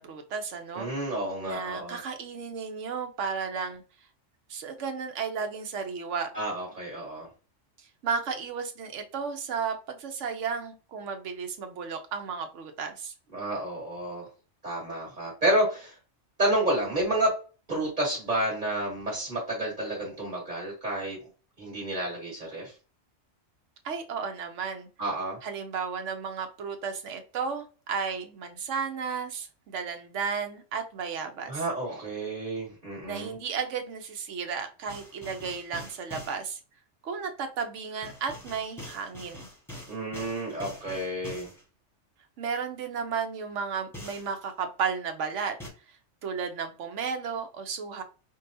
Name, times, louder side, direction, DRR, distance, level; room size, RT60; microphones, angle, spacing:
voice 1, 0.0-0.9 1.4-3.8 4.5-6.3 7.8-13.1 23.8-24.9 25.4-31.6 33.0-36.6 37.0-39.5 42.4-45.5 45.9-48.0, right 6 dB, 75° right, 6 dB, 1.1 m, -33 dB
voice 2, 0.8-2.0 6.3-7.3 13.3-14.3 14.6-15.9 16.4-17.4 17.7-21.2 21.6-22.7 25.0-25.4 31.5-33.3 39.9-41.5, right 1 dB, 40° right, -4 dB, 1.7 m, -30 dB
sound 1, 34.9-36.4 38.0-41.6 43.9-44.3 45.6-45.7, equal, ahead, 1.1 m, -44 dB
5.1 x 2.3 x 2.6 m, 0.34 s
omnidirectional pair, 1.3 m